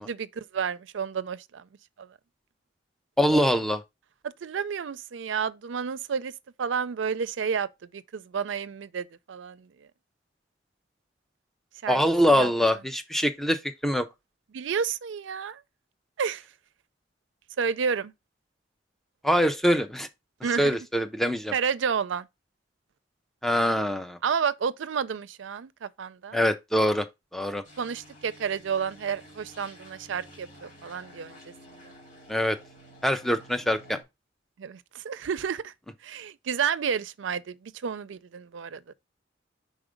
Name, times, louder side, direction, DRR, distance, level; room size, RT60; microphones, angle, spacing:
voice 1, 0.0-1.6 2.0-2.1 4.4-6.3 6.6-9.7 11.8-12.0 12.3-12.5 14.5-15.6 16.2-16.4 17.6-18.1 20.4-20.8 21.5-22.3 24.2-26.4 27.8-31.4 34.6-35.7 36.0-38.9, right 6 dB, 80° right, 0.4 m, -30 dB
voice 2, 3.2-3.8 11.9-14.0 19.2-20.1 20.6-21.5 23.4-24.2 26.3-27.1 27.3-27.6 32.3-32.6 33.0-34.0, equal, ahead, 0.5 m, -24 dB
sound 1, 27.6-34.0, equal, 45° left, 2.8 m, -51 dB
4.9 x 4.2 x 5.0 m
head